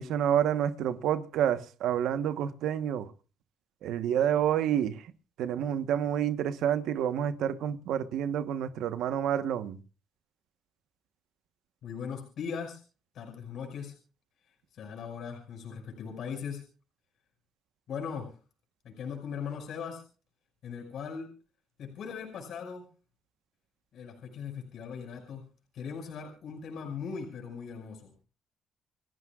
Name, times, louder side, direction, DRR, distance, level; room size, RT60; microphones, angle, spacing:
voice 1, 0.0-3.1 3.8-5.1 5.4-9.8, right 9 dB, 85° right, 1.1 m, -29 dB
voice 2, 11.8-12.8 13.1-14.0 14.4-16.7 17.9-18.4 18.8-20.0 20.6-21.3 21.8-22.8 23.9-25.4 25.7-28.1, left 6 dB, 70° left, 5.6 m, -39 dB
29.0 x 14.0 x 2.4 m
cardioid pair, 90°, 0 cm